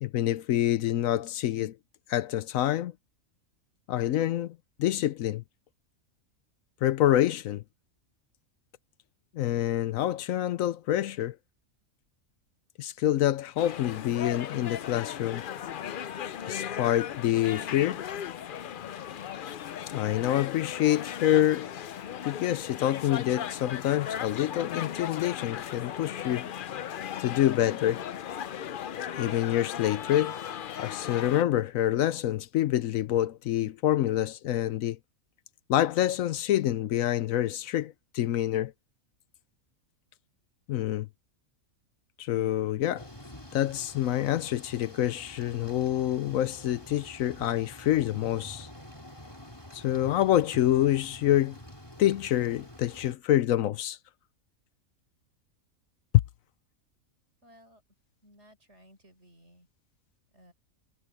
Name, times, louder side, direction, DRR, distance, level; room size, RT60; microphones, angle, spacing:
voice 1, 0.0-1.8 2.1-2.9 3.9-5.4 6.8-7.6 9.3-11.4 12.8-15.4 16.5-18.0 19.9-21.7 22.2-26.5 27.2-28.0 29.2-30.4 30.8-35.0 35.7-38.7 40.7-41.1 42.2-43.1 43.5-48.7 49.7-51.6 52.0-54.0, left 12 dB, 75° left, 1.0 m, -27 dB
sound 1, 13.6-31.4, left 9 dB, 60° left, 0.5 m, -37 dB
Thunder / Rain, 43.0-53.1, left 1 dB, 15° left, 3.6 m, -47 dB
voice 2, 57.4-57.8 58.2-59.7 60.3-60.5, equal, 55° right, 6.1 m, -57 dB
omnidirectional pair, 1.4 m